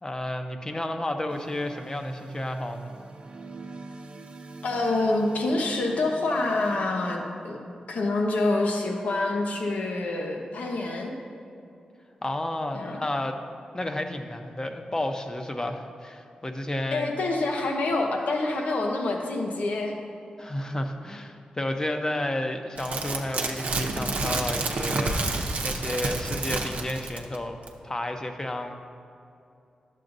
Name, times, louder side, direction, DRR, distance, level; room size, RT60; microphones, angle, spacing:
voice 1, 0.0-2.9 12.2-13.4 13.7-17.1 20.4-27.6 27.8-28.7, left 1 dB, 25° left, 5 dB, 0.7 m, -31 dB
sound 1, 1.3-6.8, right 3 dB, 50° right, 0.7 m, -43 dB
voice 2, 4.6-7.6 7.9-11.1 12.7-13.0 16.9-20.0, left 2 dB, 80° left, 1 dB, 0.9 m, -27 dB
sound 2, 22.8-27.4 27.7-27.8, right 3 dB, 80° right, 0.7 m, -29 dB
11.0 x 7.4 x 2.6 m, 2.6 s
cardioid pair, 60°, 3 cm